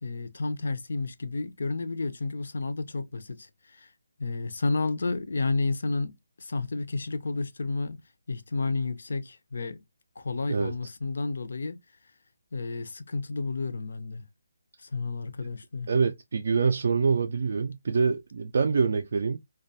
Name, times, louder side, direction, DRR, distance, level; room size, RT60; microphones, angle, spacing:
voice 1, 0.0-3.9 4.2-6.1 6.4-8.0 8.3-9.8 10.2-11.8 12.5-14.2 14.8-15.9, left 3 dB, 65° left, 0.5 m, -31 dB
voice 2, 15.9-19.4, right 5 dB, 55° right, 0.3 m, -25 dB
2.3 x 2.1 x 2.7 m
hypercardioid pair, 170°, 0 cm